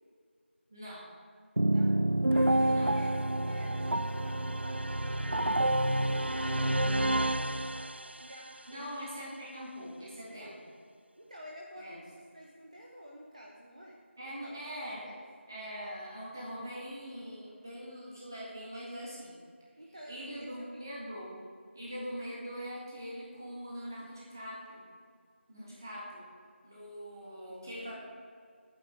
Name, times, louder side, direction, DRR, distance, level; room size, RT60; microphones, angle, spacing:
voice 1, 0.7-1.1 2.7-2.9 8.7-10.5 11.8-12.0 14.2-15.1 15.5-19.4 20.1-21.4 21.7-24.9 25.5-26.3 26.6-27.9, equal, 15° right, -6 dB, 1.8 m, -42 dB
sound 1, 1.6-8.3, right 1 dB, 60° right, 0.5 m, -28 dB
voice 2, 2.3-5.8 6.2-9.0 10.3-10.5 11.2-14.0 14.2-14.6 15.0-15.2 19.8-20.8, equal, 35° right, -2 dB, 1.1 m, -50 dB
20.5 x 9.2 x 3.5 m, 2.2 s
figure-of-eight pair, 175°, 7 cm